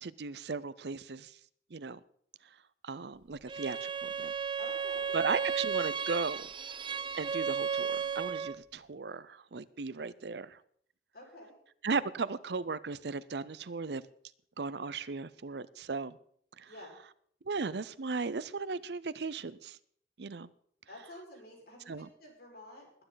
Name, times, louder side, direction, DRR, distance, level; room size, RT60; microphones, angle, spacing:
voice 1, 0.0-1.3 1.7-2.0 2.8-4.3 5.1-6.5 7.1-10.5 11.8-14.0 14.6-16.2 16.6-16.7 17.5-19.8 20.2-20.5 21.9-22.1, right 4 dB, 70° right, 0.6 m, -36 dB
Bowed string instrument, 3.5-8.6, right 6 dB, 25° right, 0.5 m, -34 dB
voice 2, 4.6-5.1 11.1-11.5 16.7-17.0 20.9-23.0, left 1 dB, 55° left, 5.3 m, -50 dB
20.5 x 9.9 x 4.0 m
head